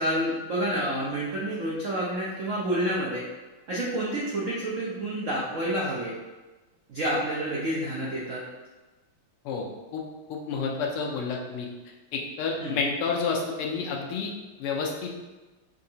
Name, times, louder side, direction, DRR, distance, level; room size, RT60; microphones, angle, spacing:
voice 1, 0.0-3.2 3.7-6.1 6.9-8.4 12.6-12.8, right 1 dB, 85° right, -6 dB, 0.7 m, -29 dB
voice 2, 9.4-10.0 10.3-11.7 12.1-14.3 14.6-15.1, left 5 dB, 85° left, 0 dB, 1.6 m, -30 dB
5.6 x 2.8 x 2.7 m, 1.2 s
omnidirectional pair, 2.4 m